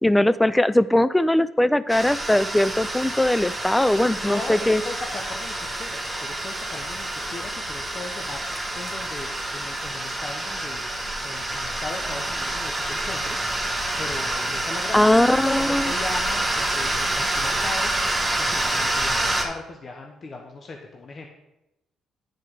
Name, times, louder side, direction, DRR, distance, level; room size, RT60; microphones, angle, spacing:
voice 1, 0.0-4.8 14.9-15.9, left 1 dB, 10° left, 16 dB, 0.3 m, -20 dB
sound 1, 1.9-19.4, right 1 dB, 10° right, 1.3 m, -27 dB
voice 2, 4.2-10.8 11.2-13.5 14.0-17.9 18.4-21.3, left 3 dB, 45° left, 2 dB, 0.9 m, -37 dB
9.8 x 4.6 x 4.7 m, 0.90 s
cardioid pair, 90°, 0 cm